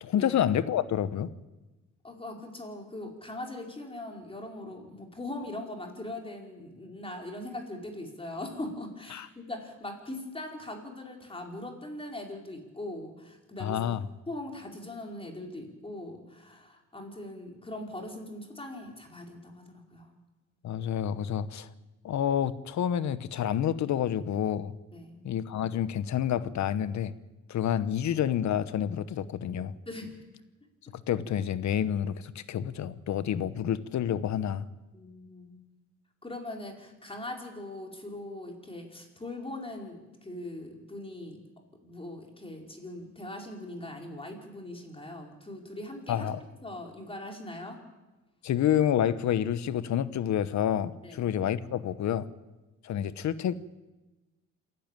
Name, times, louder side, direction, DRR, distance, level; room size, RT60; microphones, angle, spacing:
voice 1, 0.0-1.3 9.1-9.3 13.6-14.0 20.6-21.7 22.0-24.7 25.2-27.1 27.5-29.7 31.1-34.7 46.1-46.4 48.4-52.3 52.8-53.6, left 10 dB, 65° left, 15 dB, 1.1 m, -28 dB
voice 2, 2.0-13.8 14.3-20.2 24.9-25.2 29.8-30.2 34.9-35.6 36.2-41.4 41.8-46.3 46.6-47.8 51.0-51.3, left 1 dB, 20° left, 1 dB, 4.9 m, -41 dB
27.0 x 11.5 x 9.1 m, 1.1 s
cardioid pair, 90°, 30 cm